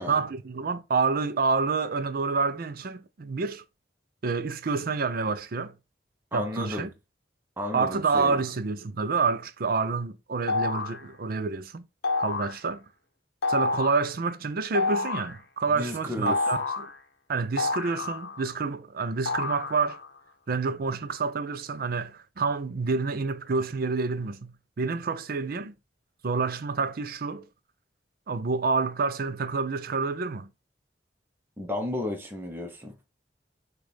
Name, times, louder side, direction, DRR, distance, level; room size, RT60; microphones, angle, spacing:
voice 1, 0.1-3.6 4.2-5.7 6.3-6.9 7.7-11.8 12.2-12.8 13.5-16.9 17.3-20.0 20.5-25.7 26.2-27.4 28.3-30.5, right 4 dB, 55° right, 0.5 m, -28 dB
voice 2, 6.3-6.9 7.6-8.4 15.8-16.4 31.6-32.9, left 1 dB, 10° right, 0.8 m, -33 dB
sound 1, 10.5-11.0 12.0-12.6 13.4-14.0 14.7-15.4 16.3-16.9 17.6-18.5 19.3-20.1, left 3 dB, 65° left, 0.9 m, -29 dB
6.3 x 2.4 x 3.4 m
head